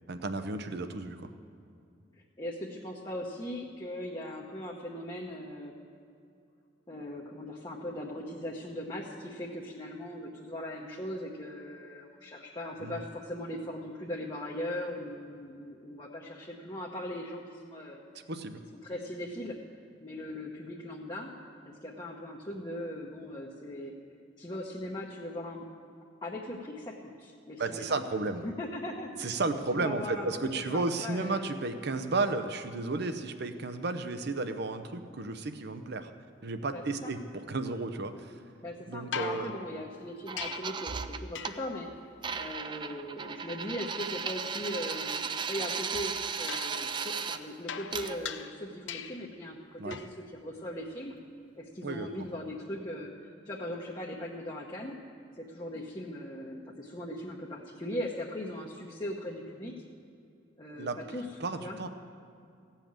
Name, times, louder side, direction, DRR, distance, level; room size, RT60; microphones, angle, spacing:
voice 1, 0.1-1.3 12.8-13.0 18.3-18.6 27.6-28.5 29.2-36.1 36.4-38.4 38.9-39.5 49.8-50.0 51.8-52.3 60.8-61.0 61.4-61.9, right 3 dB, 60° right, 9 dB, 0.8 m, -33 dB
voice 2, 2.4-5.7 6.9-18.0 18.8-19.6 20.0-21.3 21.6-23.9 24.4-25.6 26.2-28.0 28.4-29.4 29.7-31.6 36.7-37.1 38.6-45.2 45.5-50.1 50.4-51.1 51.6-55.0 55.4-59.7 60.6-61.2 61.6-61.8, left 1 dB, 25° left, -3 dB, 0.9 m, -39 dB
sound 1, 39.1-40.9 41.3-41.8 46.5-49.4 49.9-50.3 52.2-52.3, left 7 dB, 70° left, 0.6 m, -41 dB
sound 2, 40.3-41.6 42.2-47.4 47.9-48.2, right 6 dB, 25° right, 0.4 m, -35 dB
16.0 x 5.7 x 8.7 m, 2.5 s
head